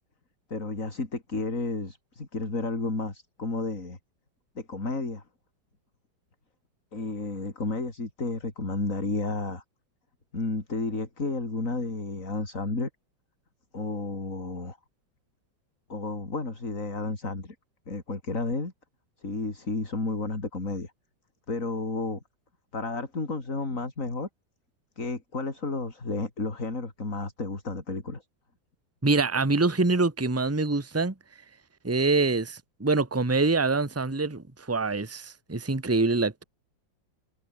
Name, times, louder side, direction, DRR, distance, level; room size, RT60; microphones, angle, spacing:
voice 1, 0.5-4.0 4.6-5.2 6.9-9.6 10.3-12.9 13.7-14.8 15.9-17.6 17.9-18.7 19.2-20.9 21.5-22.2 22.7-24.3 25.0-28.2, left 3 dB, 40° left, 4.3 m, -32 dB
voice 2, 29.0-31.1 31.8-36.4, right 3 dB, 10° right, 1.4 m, -25 dB
omnidirectional pair, 2.1 m